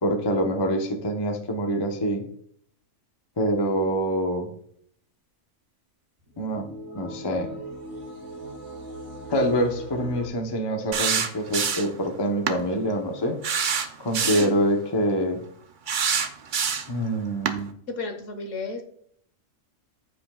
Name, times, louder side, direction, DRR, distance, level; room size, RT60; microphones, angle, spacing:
voice 1, 0.0-2.2 3.4-4.5 6.4-6.7 6.9-7.5 9.3-13.4 14.0-15.4 16.9-17.7, equal, 25° left, 3 dB, 0.7 m, -25 dB
sound 1, 6.2-10.3, right 1 dB, 25° right, 1.6 m, -39 dB
sound 2, 10.9-12.0 12.5-12.6 13.4-14.5 15.9-17.0 17.5-17.6, right 6 dB, 50° right, 0.6 m, -25 dB
voice 2, 14.2-14.6 17.9-18.8, left 2 dB, 65° left, 5 dB, 1.5 m, -33 dB
14.5 x 5.2 x 2.3 m, 0.65 s
omnidirectional pair, 1.4 m